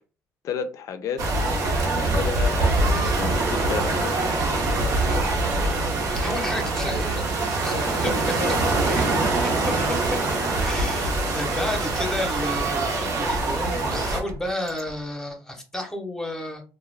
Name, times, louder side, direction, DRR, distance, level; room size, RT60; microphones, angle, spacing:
voice 1, 0.4-1.2 1.9-4.6 7.8-9.3, left 6 dB, 60° left, 9 dB, 0.4 m, -33 dB
sound 1, 1.2-14.2, right 2 dB, 80° right, 0.7 m, -24 dB
voice 2, 6.1-7.3 7.6-8.5 8.9-9.0 9.4-10.2 10.6-16.6, left 1 dB, 10° left, 3 dB, 0.7 m, -32 dB
sound 2, 8.8-9.5 10.8-13.6 14.3-15.1, right 5 dB, 50° right, 0.3 m, -39 dB
2.4 x 2.1 x 3.2 m, 0.34 s
cardioid pair, 120°, 6 cm